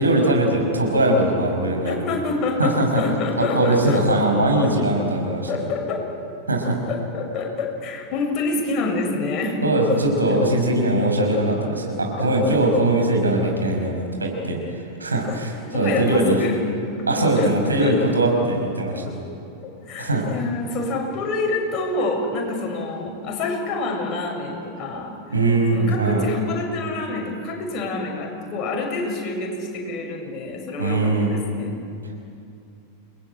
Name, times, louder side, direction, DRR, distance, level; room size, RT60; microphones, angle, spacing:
voice 1, 0.0-2.0 2.6-3.0 3.4-5.5 6.5-6.8 9.6-14.6 15.0-16.4 17.1-19.0 20.0-20.2 25.3-26.2 30.8-31.4, right 1 dB, 80° right, 1 dB, 5.8 m, -20 dB
voice 2, 1.9-4.0 5.5-6.2 6.9-9.6 10.3-10.4 12.2-12.3 15.3-15.4 15.7-16.6 16.9-18.0 19.1-19.2 19.6-25.1 25.7-31.8, left 3 dB, 35° left, 1 dB, 7.0 m, -27 dB
29.5 x 21.5 x 9.0 m, 2.5 s
figure-of-eight pair, 90°, 0 cm